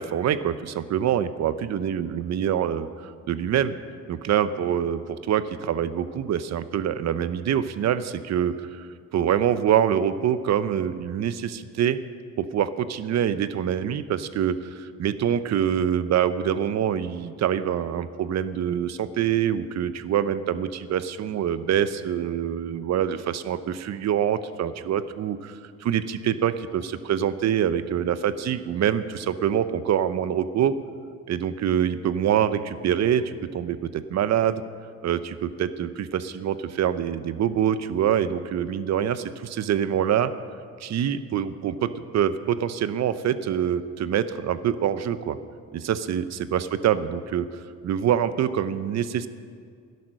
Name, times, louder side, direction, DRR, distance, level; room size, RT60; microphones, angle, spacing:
voice 1, 0.0-3.7 4.1-12.0 12.4-30.7 31.3-34.6 35.0-40.3 40.8-45.4 45.7-47.5 47.8-49.3, right 9 dB, 60° right, 13 dB, 0.7 m, -25 dB
12.5 x 11.0 x 6.5 m, 2.1 s
cardioid pair, 90°, 30 cm